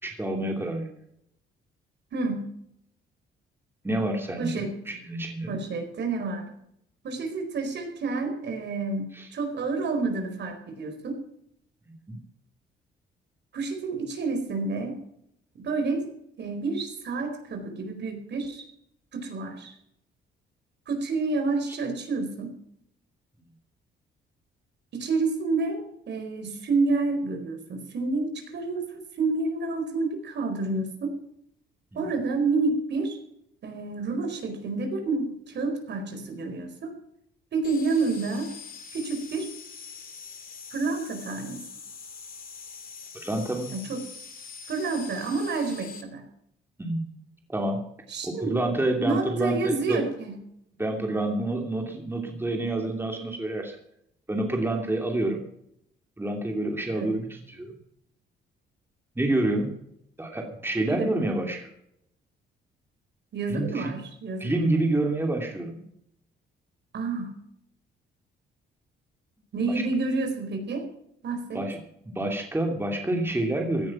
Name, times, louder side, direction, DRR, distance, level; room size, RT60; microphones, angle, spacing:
voice 1, 0.0-0.9 3.8-5.5 9.1-9.3 12.1-12.2 21.7-21.8 31.9-32.0 43.1-43.7 46.8-47.0 47.5-47.8 48.2-50.1 50.8-53.8 54.3-55.4 56.2-57.7 59.2-59.7 60.2-61.7 63.5-63.9 64.4-65.8 69.7-69.8 71.5-71.8 72.1-73.9, right 2 dB, 10° right, 3 dB, 2.8 m, -28 dB
voice 2, 2.1-2.5 4.4-4.7 5.5-6.5 7.0-9.1 9.3-11.2 13.5-14.9 15.5-16.1 16.4-18.6 19.1-19.7 20.9-22.5 24.9-31.2 31.9-33.2 33.6-36.9 37.5-38.5 38.9-39.5 40.7-41.6 43.7-44.0 44.7-46.2 48.1-48.7 49.0-50.4 56.9-57.2 60.9-61.1 63.3-64.5 66.9-67.3 69.5-70.8 71.2-71.6, right 3 dB, 60° right, 5 dB, 4.6 m, -29 dB
sound 1, 37.6-46.0, left 5 dB, 45° left, 2.9 m, -43 dB
16.5 x 10.5 x 6.0 m, 0.75 s
cardioid pair, 90°, 20 cm